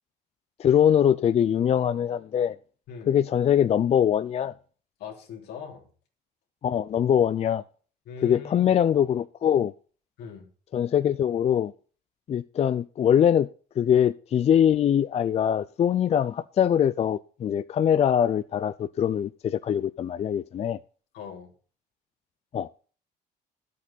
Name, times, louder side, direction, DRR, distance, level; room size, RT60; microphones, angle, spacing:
voice 1, 0.6-2.6 3.1-4.5 6.6-7.6 8.2-9.7 10.7-11.7 12.3-13.5 13.8-20.8 22.5-22.7, left 9 dB, 40° left, 0.4 m, -23 dB
voice 2, 5.0-5.9 8.0-8.7 10.2-10.4 21.1-21.5, left 6 dB, 80° left, 3.2 m, -40 dB
11.5 x 8.5 x 4.1 m
cardioid pair, 110°, 17 cm